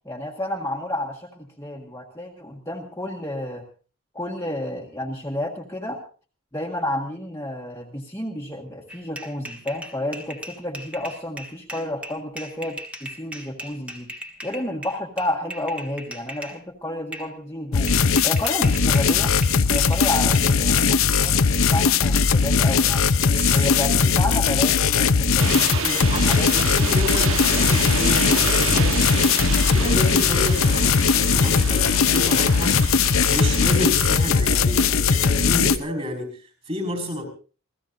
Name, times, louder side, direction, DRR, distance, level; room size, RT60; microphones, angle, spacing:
voice 1, 0.0-3.6 4.1-6.0 6.5-14.1 14.4-17.9 18.2-19.3 19.7-21.5 21.7-23.1 23.5-25.7 26.3-26.5, left 1 dB, 15° left, -1 dB, 1.6 m, -31 dB
sound 1, 8.9-16.6 17.1-17.3 17.9-21.2, equal, 5° right, 1.5 m, -38 dB
sound 2, 17.7-35.8, left 5 dB, 70° left, 0.8 m, -19 dB
voice 2, 23.2-24.3 25.3-29.3 29.7-32.8 33.2-37.3, left 1 dB, 30° right, 5 dB, 5.5 m, -30 dB
sound 3, 25.4-33.9, right 5 dB, 70° right, 1.3 m, -29 dB
27.5 x 16.0 x 2.7 m, 0.37 s
head